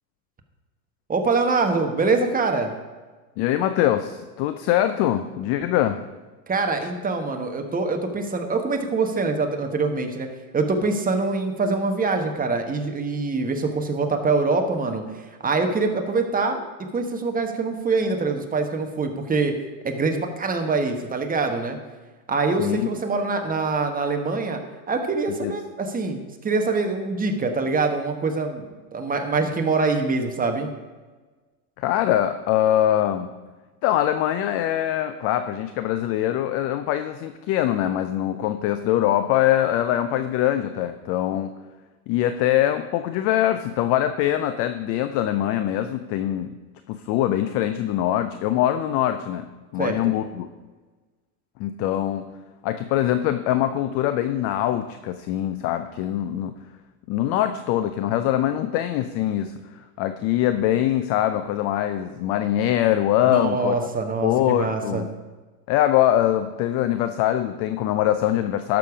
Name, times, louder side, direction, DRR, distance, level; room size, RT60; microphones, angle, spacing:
voice 1, 1.1-2.7 6.5-10.3 10.5-15.0 15.4-16.6 16.9-19.6 19.8-21.8 22.3-24.6 24.9-30.7 49.8-50.1 63.3-65.0, right 3 dB, 15° right, 5 dB, 1.3 m, -24 dB
voice 2, 3.4-6.0 22.6-22.9 25.3-25.5 31.8-33.3 33.8-41.5 42.1-46.5 46.9-49.4 49.7-50.5 51.6-52.3 52.6-56.6 57.1-63.7 64.2-65.1 65.7-68.8, left 12 dB, 30° left, 10 dB, 0.4 m, -23 dB
11.5 x 6.9 x 4.9 m, 1.3 s
hypercardioid pair, 105°, 49 cm